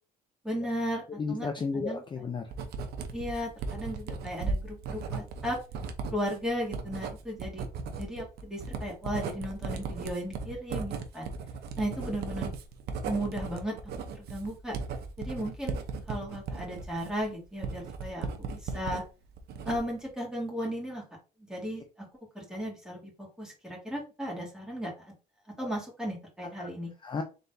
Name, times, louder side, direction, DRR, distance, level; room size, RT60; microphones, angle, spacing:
voice 1, 0.4-1.0 1.3-2.0 3.1-5.6 6.1-7.7 7.9-11.3 11.8-12.5 13.0-13.7 14.1-14.8 15.2-15.8 16.1-19.0 19.6-21.0 21.5-21.8 22.3-25.1 25.6-26.9, equal, 5° right, -3 dB, 2.3 m, -35 dB
voice 2, 1.2-2.5 25.6-25.7 26.6-26.7 27.0-27.2, left 4 dB, 30° left, 5 dB, 0.5 m, -33 dB
Writing, 2.5-19.0 19.4-20.1, right 4 dB, 70° right, 0.8 m, -37 dB
3.9 x 3.9 x 2.7 m, 0.32 s
cardioid pair, 110°, 17 cm